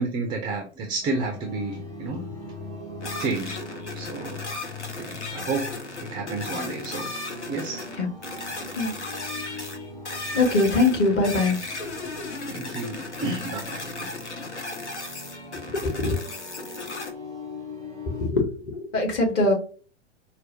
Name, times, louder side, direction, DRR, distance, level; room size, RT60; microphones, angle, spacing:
voice 1, 0.0-2.2 3.2-3.6 3.9-4.4 5.0-5.7 6.0-7.1 7.5-7.9 9.1-9.2 12.0-12.1 12.5-14.1 14.9-15.1, right 3 dB, 15° right, 3 dB, 0.4 m, -31 dB
sound 1, 1.0-18.3, left 3 dB, 10° left, 1.0 m, -40 dB
sound 2, 3.0-17.1, left 2 dB, 75° left, 0.9 m, -36 dB
voice 2, 10.3-11.6 15.7-16.2 18.0-19.5, left 2 dB, 30° left, 1 dB, 1.2 m, -22 dB
4.5 x 2.2 x 2.6 m, 0.39 s
figure-of-eight pair, 100°, 35 cm